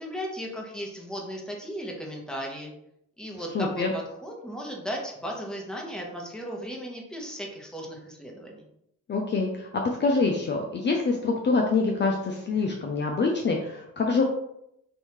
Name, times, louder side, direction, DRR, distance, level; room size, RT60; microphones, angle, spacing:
voice 1, 0.0-2.7 3.2-8.7, equal, ahead, -1 dB, 1.2 m, -36 dB
voice 2, 3.5-3.9 9.1-9.7 10.0-14.2, left 4 dB, 35° left, 1 dB, 0.6 m, -25 dB
5.4 x 2.7 x 3.1 m, 0.78 s
cardioid pair, 90°, 30 cm